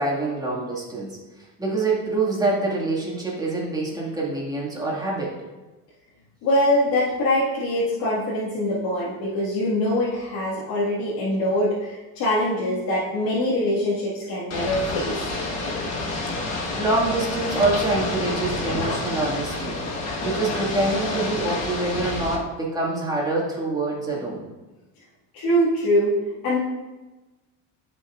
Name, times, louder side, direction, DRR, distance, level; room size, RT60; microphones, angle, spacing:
voice 1, 0.0-5.4 16.5-24.5, right 2 dB, 10° right, -5 dB, 2.0 m, -26 dB
voice 2, 6.4-15.3 25.3-26.2 26.4-26.6, left 1 dB, 70° left, -9 dB, 2.0 m, -23 dB
Ocean / Boat Water vehicle, 14.5-22.4, left 2 dB, 45° left, 1.5 m, -28 dB
13.0 x 5.5 x 2.5 m, 1.2 s
cardioid pair, 145°, 36 cm